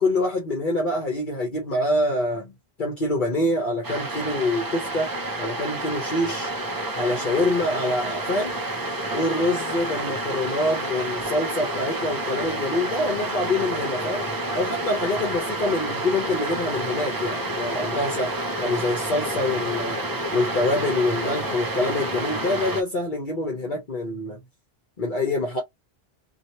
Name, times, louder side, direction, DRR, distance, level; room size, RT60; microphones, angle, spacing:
voice 1, 0.0-6.5 7.0-8.6 9.1-14.3 14.5-18.3 18.6-20.0 20.3-24.4 25.0-25.6, left 2 dB, 55° left, 1.1 m, -25 dB
sound 1, 3.8-22.8, right 1 dB, 30° right, 0.4 m, -29 dB
3.0 x 2.5 x 2.9 m
omnidirectional pair, 1.0 m